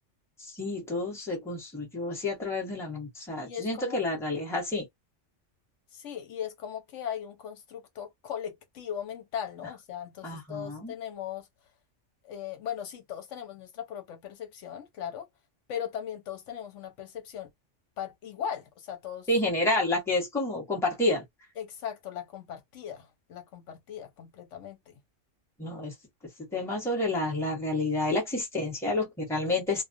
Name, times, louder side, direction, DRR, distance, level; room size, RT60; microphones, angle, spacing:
voice 1, 0.4-4.9 10.2-10.9 19.3-21.2 25.6-25.9 26.5-29.8, left 2 dB, ahead, 0.9 m, -29 dB
voice 2, 3.4-4.0 5.9-11.5 12.2-15.3 15.7-17.5 18.0-19.3 21.6-24.9, left 9 dB, 80° left, 1.0 m, -38 dB
2.3 x 2.1 x 2.4 m
omnidirectional pair, 1.2 m